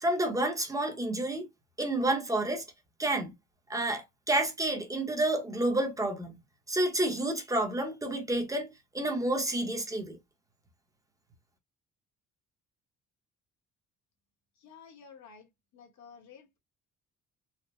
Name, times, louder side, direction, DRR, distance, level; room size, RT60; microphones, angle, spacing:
voice 1, 0.0-1.5 1.8-2.6 3.0-3.3 3.7-6.4 6.7-8.7 8.9-10.2, right 1 dB, 10° right, 0.8 m, -29 dB
voice 2, 14.6-15.5 15.7-16.6, left 6 dB, 65° left, 1.2 m, -52 dB
4.2 x 2.1 x 3.1 m
cardioid pair, 155°, 30 cm